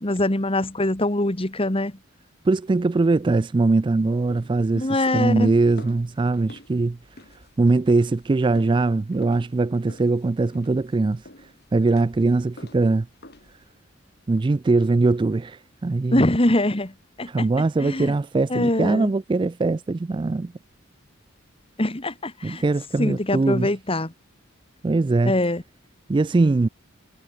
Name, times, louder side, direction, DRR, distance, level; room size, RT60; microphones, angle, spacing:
voice 1, 0.0-2.0 4.7-5.5 16.1-17.5 17.8-18.1 18.5-19.1 21.8-22.6 23.0-24.1 25.3-25.6, left 1 dB, 25° left, 1.8 m, -23 dB
voice 2, 2.5-4.9 5.1-7.0 7.6-11.2 11.7-13.1 14.3-16.2 17.2-20.5 22.4-23.7 24.8-25.3 26.1-26.7, right 3 dB, 25° right, 0.3 m, -21 dB
sound 1, 4.0-13.7, left 1 dB, 50° left, 6.2 m, -48 dB
head